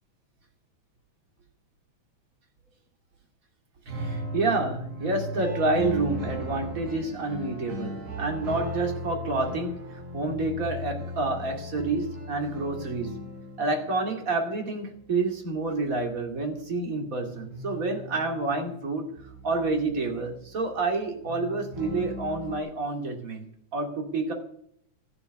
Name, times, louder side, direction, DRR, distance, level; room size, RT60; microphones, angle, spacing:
voice 1, 3.9-13.2 13.6-19.1 19.4-23.4 23.7-24.3, right 3 dB, 30° right, 3 dB, 2.4 m, -29 dB
sound 1, 3.9-15.2 15.4-16.6 17.5-20.7 21.2-22.6, left 1 dB, 50° right, 6.3 m, -37 dB
14.0 x 7.0 x 9.4 m, 0.69 s
omnidirectional pair, 3.4 m